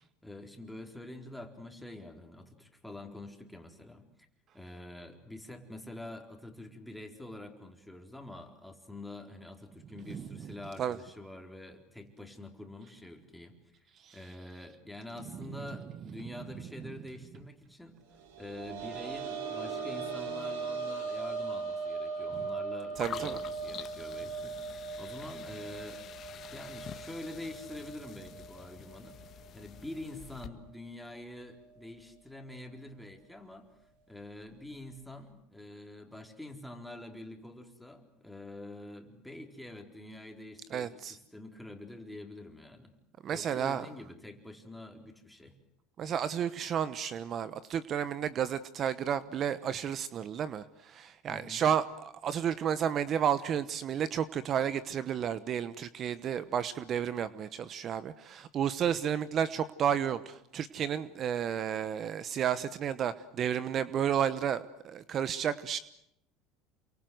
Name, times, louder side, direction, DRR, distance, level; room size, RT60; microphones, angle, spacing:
voice 1, 0.2-4.1 4.5-13.6 14.1-18.0 18.4-24.6 25.0-26.0 26.5-33.7 34.1-42.9 43.3-45.6 51.3-51.7, left 1 dB, ahead, 3 dB, 4.2 m, -46 dB
sound 1, 18.1-29.6 29.9-30.0 31.6-31.7, right 4 dB, 80° right, 5.6 m, -39 dB
sound 2, 23.0-30.5, left 10 dB, 45° left, 1.7 m, -47 dB
voice 2, 23.0-23.4 40.7-41.2 43.2-43.9 46.0-65.8, right 8 dB, 45° right, 15 dB, 1.1 m, -32 dB
28.5 x 23.5 x 7.9 m, 0.79 s
supercardioid pair, 105°, 0 cm